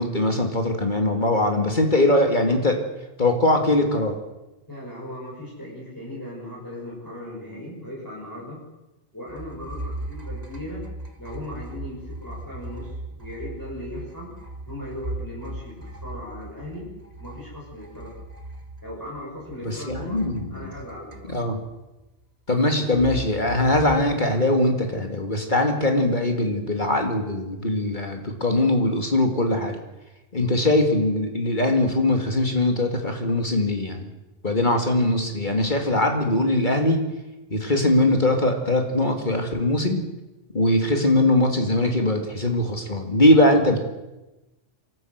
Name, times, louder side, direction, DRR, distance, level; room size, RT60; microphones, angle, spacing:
voice 1, 0.0-2.8 3.2-4.2 19.6-20.7 21.3-21.6 22.5-29.8 30.3-34.0 34.4-37.0 37.5-40.0 40.5-43.8, left 1 dB, 40° left, 4 dB, 2.4 m, -21 dB
voice 2, 4.7-8.6 9.1-10.8 11.2-14.3 14.7-16.9 17.2-18.1 18.8-20.2 20.5-21.4, left 1 dB, 15° left, -6 dB, 6.0 m, -38 dB
sound 1, 9.3-19.6 19.9-21.7 22.9-24.0, right 1 dB, 35° right, 1.9 m, -38 dB
24.5 x 13.5 x 8.0 m, 1.0 s
omnidirectional pair, 1.2 m